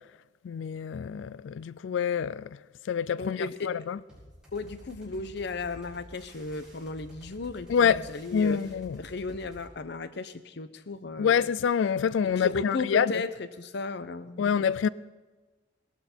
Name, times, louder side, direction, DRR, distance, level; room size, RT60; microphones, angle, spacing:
voice 1, 0.4-2.5 2.9-4.0 7.7-8.0 8.3-9.0 11.2-13.1 14.4-14.9, left 7 dB, 85° left, 0.3 m, -26 dB
voice 2, 3.2-3.7 4.5-8.6 9.0-11.5 12.2-14.5, left 3 dB, 65° left, 0.8 m, -35 dB
sound 1, 4.1-9.7, equal, 5° right, 5.4 m, -50 dB
18.0 x 12.5 x 4.4 m
head